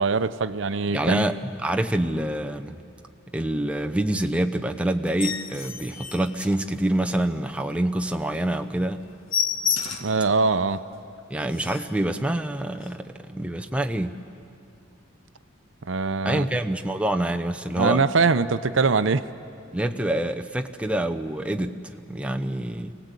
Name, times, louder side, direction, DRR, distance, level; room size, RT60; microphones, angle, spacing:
voice 1, 0.0-1.3 10.0-10.8 15.9-16.5 17.8-19.3, right 4 dB, 70° right, 12 dB, 0.7 m, -22 dB
voice 2, 0.9-2.8 3.3-9.0 11.3-14.2 16.2-18.0 19.7-22.9, right 1 dB, 5° right, 5 dB, 0.7 m, -26 dB
sound 1, 5.0-7.2 7.6-7.8 8.1-8.2 8.5-8.7 8.9-10.2 10.7-10.8 11.2-11.3 11.5-12.0 12.7-12.9, left 7 dB, 80° left, 1.4 m, -30 dB
25.5 x 18.0 x 8.3 m, 2.5 s
head